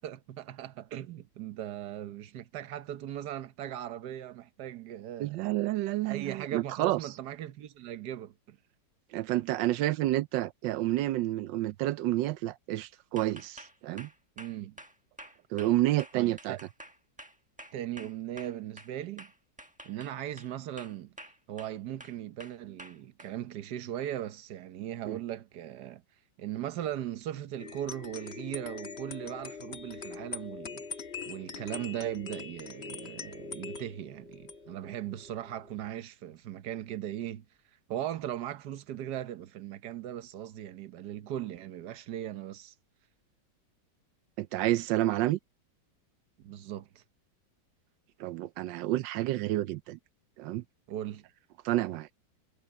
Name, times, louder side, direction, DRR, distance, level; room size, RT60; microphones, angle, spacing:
voice 1, 0.0-5.6 6.0-8.6 14.4-14.8 16.1-16.6 17.7-19.3 19.8-21.1 21.5-26.0 26.4-30.9 31.3-37.4 37.9-42.7 46.4-47.0 50.9-51.2, right 11 dB, 70° right, 1.5 m, -38 dB
voice 2, 5.2-7.1 9.1-14.1 15.5-16.6 25.0-25.2 44.4-45.4 48.2-50.0 50.4-50.6 51.6-52.1, right 15 dB, 90° right, 1.3 m, -29 dB
sound 1, 13.2-18.9 19.2-20.5 20.8-21.7 22.0-23.3, right 1 dB, 5° right, 1.1 m, -49 dB
sound 2, 27.6-35.9, left 5 dB, 40° left, 1.4 m, -43 dB
omnidirectional pair, 1.9 m